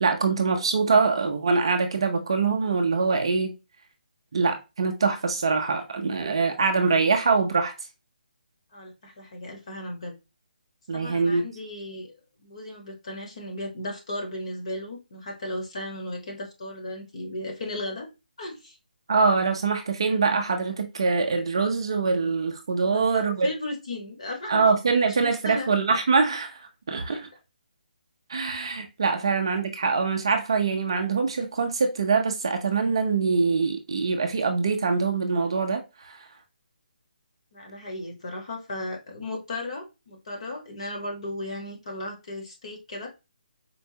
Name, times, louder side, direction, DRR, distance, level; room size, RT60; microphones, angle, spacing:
voice 1, 0.0-3.5 4.3-7.7 10.9-11.4 19.1-23.5 24.5-26.6 26.9-27.3 28.3-36.3, right 4 dB, 30° right, 0.4 m, -24 dB
voice 2, 8.7-10.1 10.9-12.1 12.4-18.1 18.4-18.8 22.8-24.6 25.2-25.7 27.1-27.2 29.2-29.4 37.5-43.1, left 1 dB, 35° left, 1.0 m, -35 dB
4.4 x 2.2 x 2.7 m
hypercardioid pair, 180°, 5 cm